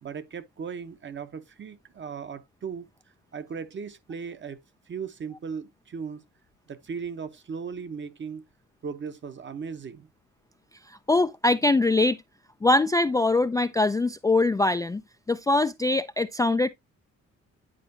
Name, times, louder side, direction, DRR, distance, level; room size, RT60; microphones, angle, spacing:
voice 1, 0.0-2.9 3.3-4.6 4.9-6.2 6.7-8.4 8.8-10.1, right 6 dB, 40° right, 0.9 m, -37 dB
voice 2, 10.9-12.2 12.6-15.0 15.3-16.7, left 2 dB, 10° left, 0.3 m, -23 dB
10.0 x 4.4 x 2.6 m
cardioid pair, 90°, 30 cm